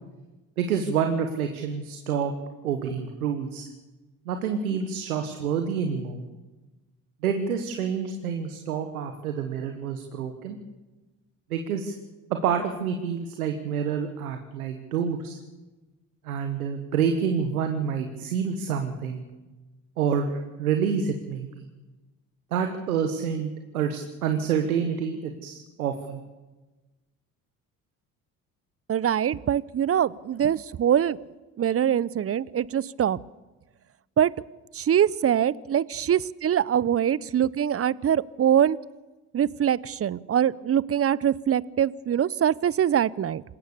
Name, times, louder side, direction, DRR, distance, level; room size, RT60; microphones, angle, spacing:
voice 1, 0.6-2.3 2.6-3.7 4.2-6.2 7.2-10.6 11.5-11.9 12.3-15.4 16.2-19.2 20.0-21.6 22.5-26.2, right 7 dB, 85° right, 6 dB, 1.6 m, -28 dB
voice 2, 28.9-31.2 31.6-33.2 34.2-34.3 34.7-38.8 39.3-43.4, right 9 dB, 35° right, 22 dB, 0.7 m, -23 dB
26.5 x 16.5 x 6.9 m, 1.1 s
hypercardioid pair, 55°, 42 cm